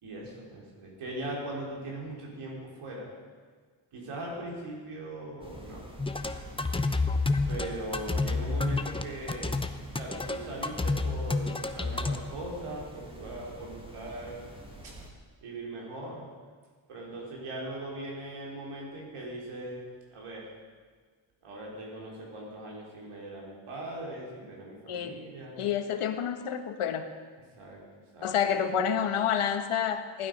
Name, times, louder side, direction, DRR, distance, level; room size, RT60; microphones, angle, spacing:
voice 1, 0.0-3.1 3.9-5.8 7.5-9.6 9.9-14.5 14.8-14.9 15.4-16.3 16.9-19.8 20.1-20.5 21.4-25.6 27.6-27.8 28.1-28.3, right 1 dB, 85° right, -3 dB, 4.2 m, -40 dB
sound 1, 5.4-15.1, right 1 dB, 10° right, 2.1 m, -47 dB
sound 2, 6.0-12.2, left 3 dB, 10° left, 0.7 m, -29 dB
voice 2, 25.6-27.1 28.2-30.3, left 8 dB, 90° left, 7 dB, 1.3 m, -29 dB
16.0 x 11.5 x 5.4 m, 1.5 s
cardioid pair, 110°, 50 cm